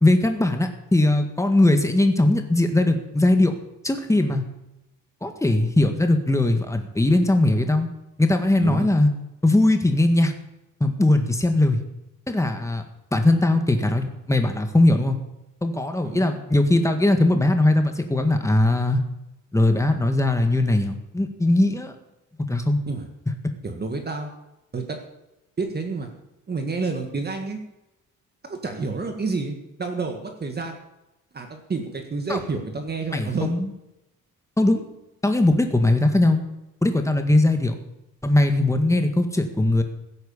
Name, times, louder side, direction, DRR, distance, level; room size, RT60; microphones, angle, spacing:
voice 1, 0.0-3.5 3.8-4.4 5.2-7.9 8.2-9.1 9.4-10.3 10.8-11.8 12.3-12.8 13.1-15.2 15.6-19.0 19.5-21.9 22.5-22.8 32.3-32.4 33.1-33.7 34.6-34.8 35.2-36.4 36.8-37.7 38.2-39.8, left 2 dB, 10° left, 6 dB, 1.7 m, -20 dB
voice 2, 16.0-16.4 22.9-23.0 23.6-24.3 24.7-25.0 25.6-26.1 26.5-27.6 28.5-30.8 31.3-33.5, right 4 dB, 30° right, 4 dB, 1.8 m, -29 dB
16.0 x 9.1 x 7.2 m, 0.92 s
cardioid pair, 150°, 33 cm